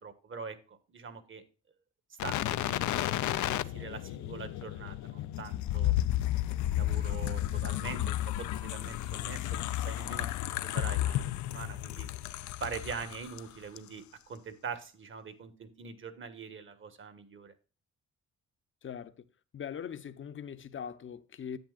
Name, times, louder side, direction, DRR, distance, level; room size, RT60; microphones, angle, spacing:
voice 1, 0.0-1.4 2.2-3.1 3.4-5.9 6.5-12.1 12.6-17.5, right 5 dB, 40° right, 1.5 m, -43 dB
sound 1, 2.2-13.4 13.8-13.9, left 14 dB, 75° left, 0.5 m, -32 dB
voice 2, 18.8-19.3 19.5-21.6, left 8 dB, 40° left, 0.8 m, -41 dB
10.5 x 8.6 x 2.4 m
cardioid pair, 90°, 30 cm